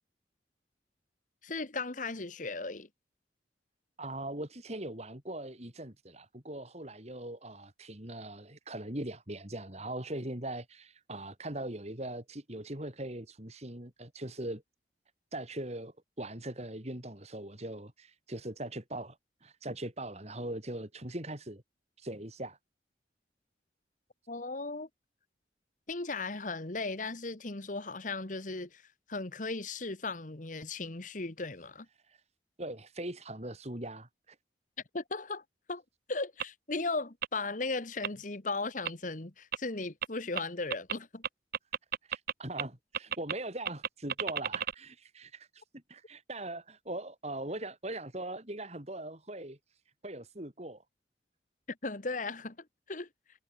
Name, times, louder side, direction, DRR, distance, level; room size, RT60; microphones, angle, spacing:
voice 1, 1.4-2.9 24.3-24.9 25.9-28.8 29.1-31.9 34.9-35.4 35.7-35.8 36.1-41.2 51.7-53.1, left 3 dB, 45° left, 1.5 m, -36 dB
voice 2, 4.0-14.6 15.3-19.2 19.4-21.6 22.0-22.6 32.1-32.2 32.6-34.4 42.1-45.6 45.9-49.6 50.0-50.8, right 1 dB, 40° right, 3.9 m, -40 dB
sound 1, 36.4-36.5 37.2-37.3 38.0-38.1 38.8-38.9 39.5-39.6 40.0-40.1 40.4-40.5 40.7-40.9 41.2-42.3 42.6-42.7 42.9-43.3 43.6-44.7, right 9 dB, 55° right, 0.6 m, -32 dB
head